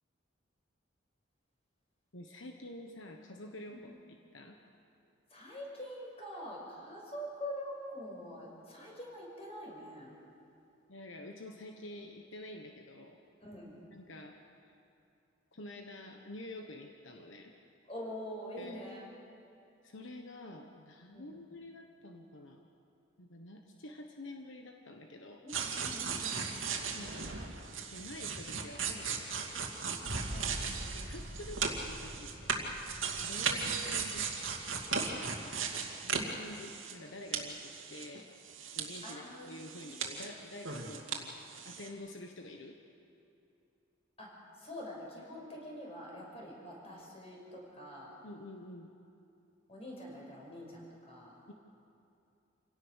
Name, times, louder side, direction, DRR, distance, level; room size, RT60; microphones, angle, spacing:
voice 1, 2.1-4.6 10.9-13.2 13.9-14.3 15.5-17.5 18.6-18.9 19.8-22.7 23.2-25.4 26.9-27.4 27.7-29.7 30.9-32.8 33.2-34.3 36.0-38.3 38.8-41.3 41.6-42.8 48.2-48.9 51.5-51.6, left 1 dB, 75° left, 3 dB, 1.3 m, -48 dB
voice 2, 5.3-10.1 13.4-13.8 17.9-19.0 21.1-21.4 25.4-26.8 30.3-30.6 33.4-33.5 39.0-40.0 44.2-44.3 44.6-48.1 49.7-51.4, equal, 30° left, -2 dB, 6.0 m, -45 dB
sound 1, 25.5-37.1 37.3-39.2 39.5-41.2 41.5-41.9, right 5 dB, 90° right, 2.5 m, -37 dB
28.0 x 17.5 x 6.6 m, 2.7 s
head